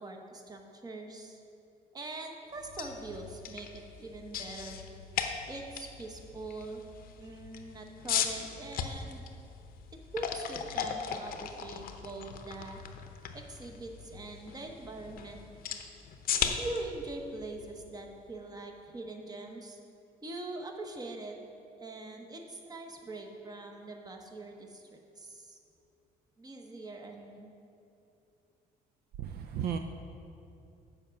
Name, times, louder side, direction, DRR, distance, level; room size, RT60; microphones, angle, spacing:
voice 1, 0.0-1.4 1.9-4.8 5.5-6.8 7.2-9.2 10.1-12.8 13.3-15.5 16.4-19.8 20.2-21.4 21.8-25.6 26.4-27.5, right 2 dB, 20° right, 3 dB, 1.0 m, -43 dB
sound 1, 2.6-18.5, left 8 dB, 60° left, 0.7 m, -38 dB
voice 2, 29.2-29.8, right 8 dB, 65° right, 7 dB, 0.4 m, -34 dB
7.1 x 5.2 x 6.8 m, 2.6 s
cardioid pair, 110°, 17 cm